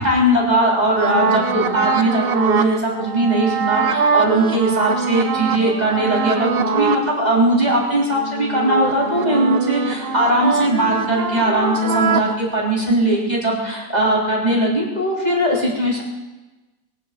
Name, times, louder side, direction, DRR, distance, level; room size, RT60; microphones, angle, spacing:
voice 1, 0.0-16.0, right 1 dB, 25° right, -3 dB, 3.7 m, -19 dB
sound 1, 1.0-7.1 7.5-12.3, right 5 dB, 45° right, 0.9 m, -23 dB
22.0 x 7.8 x 7.5 m, 1.1 s
omnidirectional pair, 1.7 m